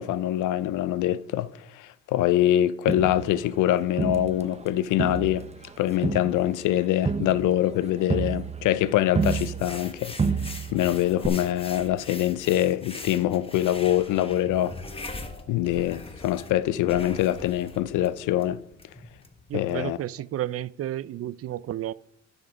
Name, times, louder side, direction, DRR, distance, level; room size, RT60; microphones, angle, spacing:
voice 1, 0.0-5.5 5.8-10.1 10.7-14.8 15.5-18.6 19.5-20.0, left 13 dB, 80° left, 0.5 m, -24 dB
Crowd, 2.9-4.7 5.0-9.9 10.2-10.9 11.2-11.3, right 5 dB, 20° right, 0.7 m, -30 dB
sound 1, 9.2-19.7, left 2 dB, 20° left, 1.3 m, -42 dB
voice 2, 19.5-21.9, right 12 dB, 50° right, 0.4 m, -32 dB
11.0 x 6.1 x 5.0 m
cardioid pair, 90°, 30 cm